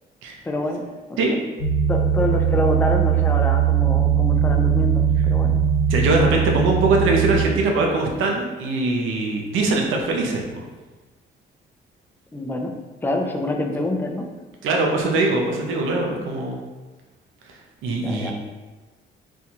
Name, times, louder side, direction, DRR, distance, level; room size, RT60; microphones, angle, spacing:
voice 1, 0.4-0.8 1.1-1.2 1.9-5.6 12.3-12.7 13.0-14.3 18.0-18.3, left 2 dB, 10° left, 3 dB, 0.4 m, -26 dB
sound 1, 1.6-7.4, right 7 dB, 60° left, 0.9 m, -20 dB
voice 2, 5.9-10.6 14.6-16.6 17.4-18.3, right 3 dB, 85° right, 0 dB, 0.6 m, -22 dB
4.3 x 2.3 x 2.8 m, 1.3 s
cardioid pair, 90°, 20 cm